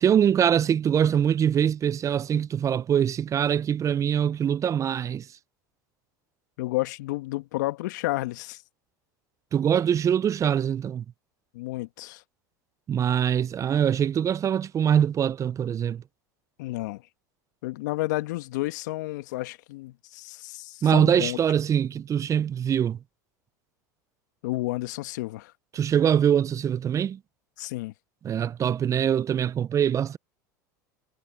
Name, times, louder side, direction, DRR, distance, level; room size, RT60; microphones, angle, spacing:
voice 1, 0.0-5.3 9.5-11.0 12.9-16.0 20.8-23.0 25.7-27.2 28.2-30.2, right 9 dB, 30° right, 0.6 m, -23 dB
voice 2, 6.6-8.6 11.5-12.2 16.6-17.0 17.6-21.4 24.4-25.5 27.6-27.9, left 19 dB, 70° left, 1.3 m, -31 dB
hypercardioid pair, 85°, 10 cm